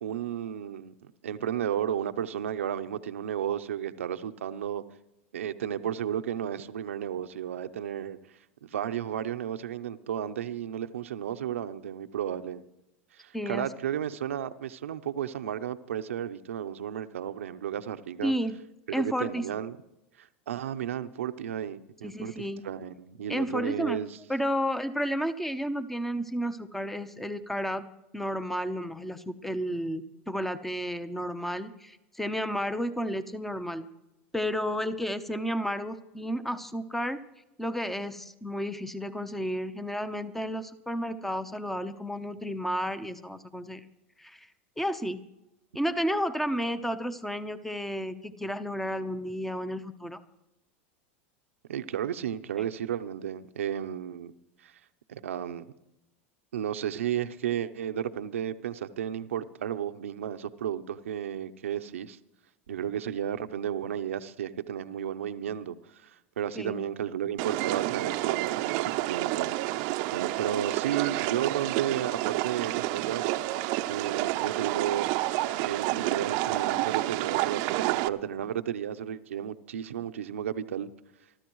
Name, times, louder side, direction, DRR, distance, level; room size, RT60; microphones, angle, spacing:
voice 1, 0.0-4.8 5.3-8.2 8.6-12.6 13.1-18.3 18.9-19.8 20.2-24.2 51.7-54.3 54.6-54.7 55.1-55.7 56.5-62.2 62.7-73.3 73.9-75.1 75.6-80.9, right 9 dB, 90° right, 0.8 m, -33 dB
voice 2, 13.3-13.7 18.2-18.6 18.9-19.4 22.0-22.6 23.3-24.0 24.3-27.8 28.1-33.8 34.3-37.2 37.6-43.8 44.2-44.5 44.8-45.2 45.7-50.2 52.6-52.7 66.5-66.8, equal, 5° left, 0.9 m, -32 dB
sound 1, 67.4-78.1, right 18 dB, 60° right, 0.7 m, -29 dB
24.0 x 13.0 x 3.1 m
hypercardioid pair, 105°, 7 cm